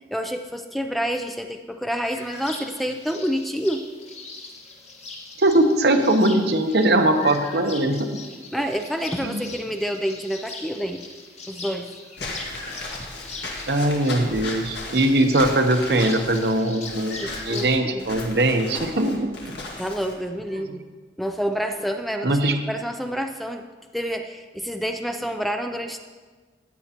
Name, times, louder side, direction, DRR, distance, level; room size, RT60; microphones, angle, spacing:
voice 1, 0.0-3.8 8.5-11.1 11.5-11.9 17.2-18.1 19.8-20.8 21.2-22.4 22.7-23.6 23.9-26.0, equal, ahead, 5 dB, 0.4 m, -28 dB
sound 1, 2.1-17.7, left 3 dB, 40° left, 1.3 m, -40 dB
voice 2, 5.4-8.1 8.5-8.7 9.2-9.4 13.7-19.6 22.2-22.6, right 1 dB, 65° right, 6 dB, 0.9 m, -21 dB
Walk footsteps / Squeak, 12.2-20.1, left 2 dB, 75° left, 2.0 m, -36 dB
15.5 x 9.3 x 2.9 m, 1.4 s
head